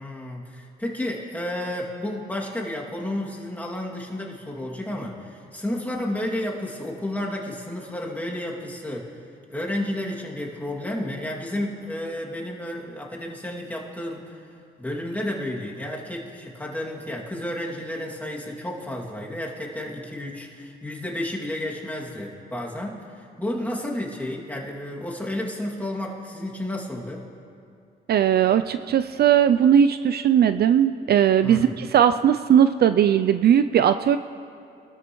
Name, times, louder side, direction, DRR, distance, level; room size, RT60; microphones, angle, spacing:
voice 1, 0.0-9.1 9.5-14.4 14.8-27.3 31.4-31.8, left 1 dB, 10° left, -3 dB, 2.4 m, -31 dB
voice 2, 28.1-34.2, right 9 dB, 55° right, 11 dB, 0.4 m, -18 dB
24.0 x 13.0 x 3.1 m, 2.5 s
cardioid pair, 90°, 20 cm